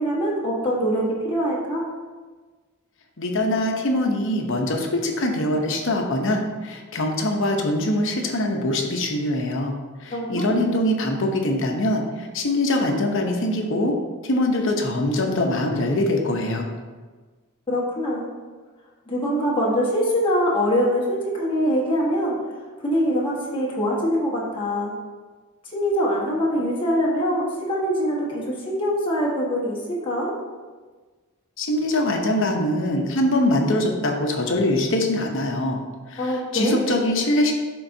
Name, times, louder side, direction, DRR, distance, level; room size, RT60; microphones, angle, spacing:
voice 1, 0.0-1.9 10.1-10.5 17.7-18.3 19.1-22.4 22.8-24.9 25.7-30.3 36.2-36.8, equal, 25° left, -5 dB, 1.4 m, -23 dB
voice 2, 3.2-9.7 10.0-14.0 14.2-16.7 31.6-35.8 36.1-37.5, left 1 dB, 60° left, 2 dB, 0.9 m, -23 dB
10.5 x 3.8 x 2.7 m, 1.4 s
head